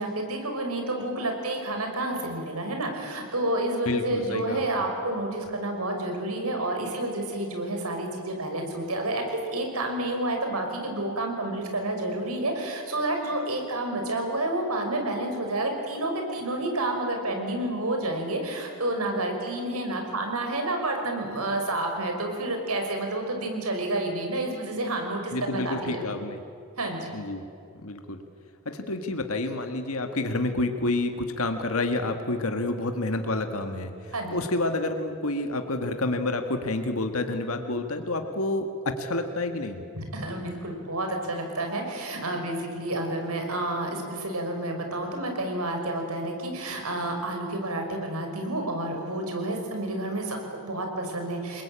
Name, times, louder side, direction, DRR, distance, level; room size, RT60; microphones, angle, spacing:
voice 1, 0.0-26.1 26.8-27.1 34.1-34.4 39.9-51.6, right 1 dB, 85° right, 3 dB, 5.8 m, -30 dB
voice 2, 3.8-4.6 25.3-26.4 27.1-27.4 27.8-28.2 28.6-39.8, left 2 dB, 75° left, 6 dB, 1.8 m, -29 dB
28.5 x 22.0 x 8.9 m, 2.5 s
head